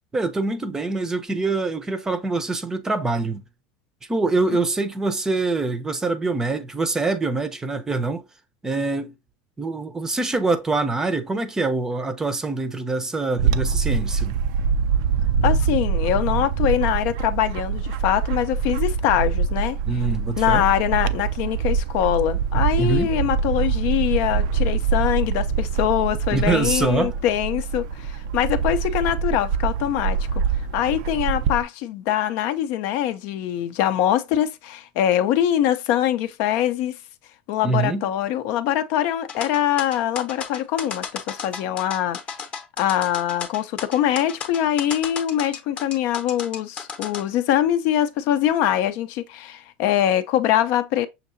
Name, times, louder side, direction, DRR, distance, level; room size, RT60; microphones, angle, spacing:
voice 1, 0.1-3.4 4.1-8.2 8.6-9.1 9.6-14.4 19.8-20.7 22.8-23.1 26.3-27.1 37.6-38.0, right 3 dB, 10° right, 0.6 m, -24 dB
Bird / Wind, 13.4-31.6, right 6 dB, 70° right, 0.4 m, -24 dB
voice 2, 15.4-19.8 20.4-30.2 30.7-37.0 37.5-42.2 42.8-51.1, left 11 dB, 60° left, 0.5 m, -23 dB
sound 1, 39.3-47.2, left 6 dB, 25° left, 0.8 m, -33 dB
6.5 x 2.8 x 2.5 m
supercardioid pair, 140°, 4 cm